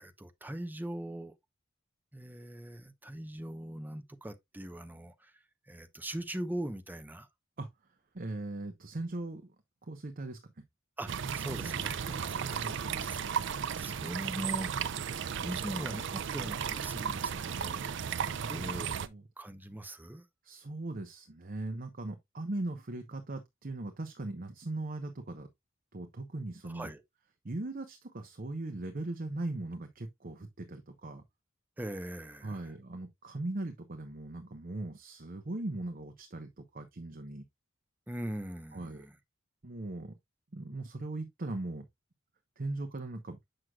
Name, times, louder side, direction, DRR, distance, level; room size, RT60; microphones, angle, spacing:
voice 1, 0.0-1.3 2.1-7.3 11.0-14.7 15.4-18.0 18.3-19.0 19.4-20.3 26.6-27.0 31.8-32.7 38.1-39.2, right 1 dB, 10° right, 0.8 m, -41 dB
voice 2, 8.1-9.5 9.8-10.6 12.4-12.9 18.1-18.6 19.1-19.2 20.4-25.5 25.9-26.9 27.4-31.2 32.4-37.4 38.7-39.0 39.6-40.2 40.5-41.9 42.6-43.4, right 2 dB, 45° right, 0.9 m, -39 dB
sound 1, 11.1-19.1, right 7 dB, 65° right, 0.5 m, -35 dB
7.6 x 6.3 x 2.3 m
head